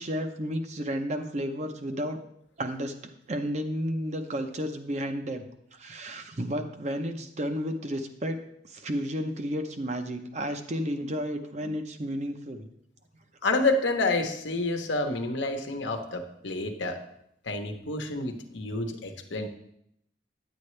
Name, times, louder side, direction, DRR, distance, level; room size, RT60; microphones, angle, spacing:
voice 1, 0.0-2.2 2.6-5.4 5.7-8.4 8.6-12.7, equal, 40° right, 6 dB, 0.7 m, -32 dB
voice 2, 13.4-17.0 17.5-19.5, left 2 dB, 80° left, 4 dB, 1.0 m, -29 dB
9.5 x 8.4 x 3.2 m, 0.74 s
head